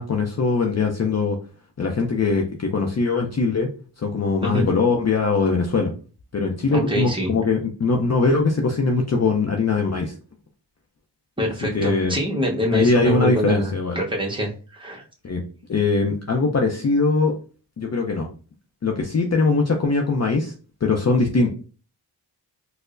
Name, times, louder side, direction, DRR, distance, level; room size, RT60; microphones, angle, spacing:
voice 1, 0.0-1.4 1.8-2.5 2.7-3.7 4.0-5.9 6.3-10.1 11.7-12.1 12.7-14.0 15.2-15.4 15.7-17.4 17.8-18.3 18.8-20.5 20.8-21.5, left 3 dB, 40° left, 1 dB, 0.5 m, -21 dB
voice 2, 6.7-7.3 11.4-15.0, equal, 10° right, -1 dB, 0.9 m, -25 dB
4.4 x 2.1 x 2.5 m, 0.36 s
wide cardioid pair, 70°, 43 cm